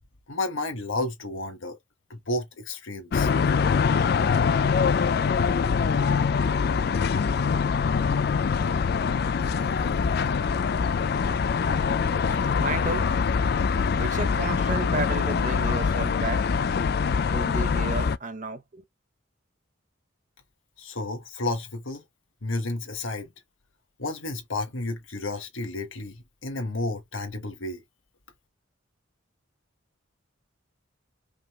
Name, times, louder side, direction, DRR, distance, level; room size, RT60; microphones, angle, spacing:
voice 1, 0.3-1.8 2.1-3.3 20.8-22.0 22.4-23.3 24.0-27.8, left 2 dB, 75° left, 1.4 m, -31 dB
sound 1, 3.1-18.2, left 5 dB, 50° left, 0.3 m, -24 dB
voice 2, 12.6-13.1 13.5-13.6 13.9-16.4 17.3-18.8, right 4 dB, 40° right, 0.7 m, -33 dB
5.2 x 2.4 x 3.1 m
head